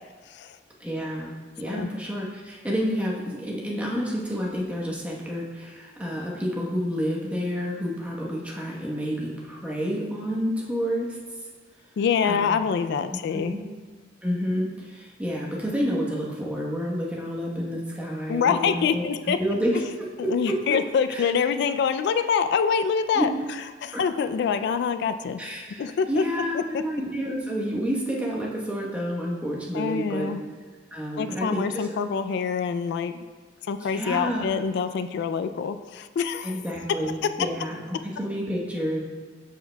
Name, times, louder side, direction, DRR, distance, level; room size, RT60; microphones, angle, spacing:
voice 1, 0.8-11.2 12.2-12.6 13.3-13.6 14.2-20.8 21.1-21.3 23.1-23.3 23.9-24.0 25.4-30.3 30.9-31.9 33.8-34.5 36.4-39.0, equal, 10° right, -3 dB, 1.0 m, -29 dB
voice 2, 12.0-13.5 18.3-19.4 20.3-23.3 23.8-25.4 25.8-26.2 26.5-26.8 29.7-30.4 31.2-33.1 33.6-36.6, left 6 dB, 60° left, 10 dB, 0.3 m, -25 dB
13.0 x 4.6 x 2.2 m, 1.4 s
head